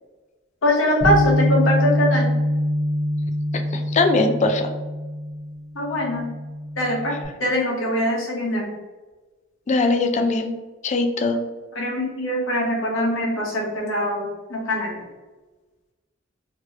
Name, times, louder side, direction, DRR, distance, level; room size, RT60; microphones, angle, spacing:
voice 1, 0.6-2.3 5.7-6.3 6.8-8.7 11.7-15.0, left 1 dB, 80° left, -2 dB, 1.0 m, -23 dB
Bass guitar, 1.0-7.3, equal, 20° right, 1.2 m, -24 dB
voice 2, 3.5-4.7 9.7-10.5 10.8-11.4, left 3 dB, 35° left, 6 dB, 0.3 m, -21 dB
3.0 x 2.9 x 2.8 m, 1.2 s
head